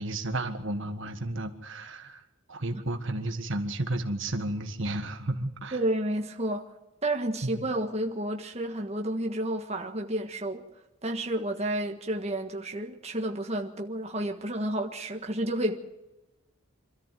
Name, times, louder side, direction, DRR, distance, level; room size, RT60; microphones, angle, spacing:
voice 1, 0.0-2.2 2.5-5.8 7.4-7.7, right 1 dB, 60° right, 7 dB, 1.6 m, -32 dB
voice 2, 5.7-6.7 7.0-10.6 11.0-15.8, right 1 dB, 30° right, 2 dB, 1.6 m, -31 dB
26.0 x 14.0 x 7.7 m, 1.0 s
head